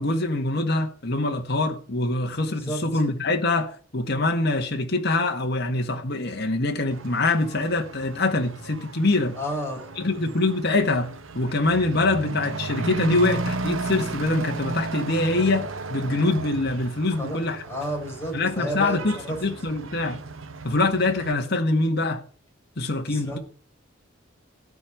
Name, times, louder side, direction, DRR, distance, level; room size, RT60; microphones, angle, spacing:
voice 1, 0.0-9.3 10.0-11.1 11.3-17.6 18.3-20.2 20.6-22.2 22.8-23.4, left 2 dB, 55° left, 1.7 m, -24 dB
voice 2, 2.5-3.0 9.4-9.9 17.2-17.4 17.6-19.4 23.1-23.4, right 1 dB, 10° left, 4.5 m, -31 dB
Truck / Accelerating revving vroom, 6.9-21.3, right 3 dB, 90° right, 1.1 m, -34 dB
16.0 x 5.4 x 8.5 m
head